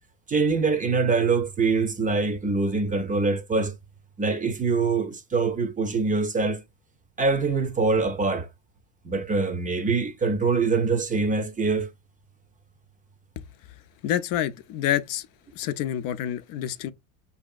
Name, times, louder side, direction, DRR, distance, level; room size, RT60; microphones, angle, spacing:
voice 1, 0.3-3.7 4.2-6.6 7.2-8.5 9.0-11.9, right 4 dB, 20° right, 0.5 m, -24 dB
voice 2, 14.0-15.3 15.6-16.9, left 11 dB, 60° left, 0.6 m, -27 dB
5.0 x 2.7 x 2.3 m
supercardioid pair, 95°, 39 cm